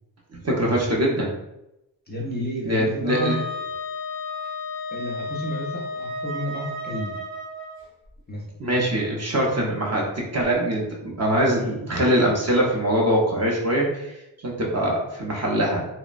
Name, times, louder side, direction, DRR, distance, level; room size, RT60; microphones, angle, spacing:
voice 1, 0.3-1.3 2.6-3.4 8.6-14.1 14.4-15.9, right 1 dB, 35° right, -3 dB, 0.6 m, -23 dB
voice 2, 2.1-3.4 4.9-7.2 8.3-8.4, equal, 20° left, -3 dB, 0.5 m, -31 dB
Wind instrument woodwind instrument, 3.1-7.8, left 2 dB, 70° right, 1.0 m, -32 dB
3.0 x 2.1 x 2.4 m, 0.90 s
wide cardioid pair, 95°, 47 cm